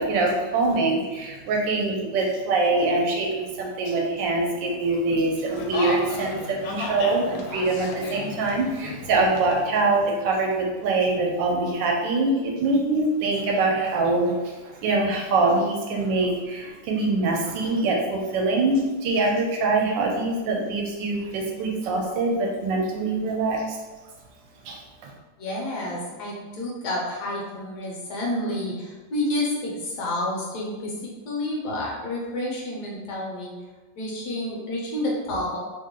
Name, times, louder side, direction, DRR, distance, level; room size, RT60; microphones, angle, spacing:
voice 1, 0.0-23.8 24.6-25.1, right 3 dB, 80° right, 0 dB, 1.3 m, -24 dB
sound 1, 5.5-10.6, left 3 dB, 85° left, 1.3 m, -34 dB
voice 2, 25.4-30.9 31.3-33.5 34.0-35.6, left 1 dB, 70° left, -2 dB, 1.2 m, -29 dB
3.2 x 2.2 x 3.6 m, 1.2 s
omnidirectional pair, 2.0 m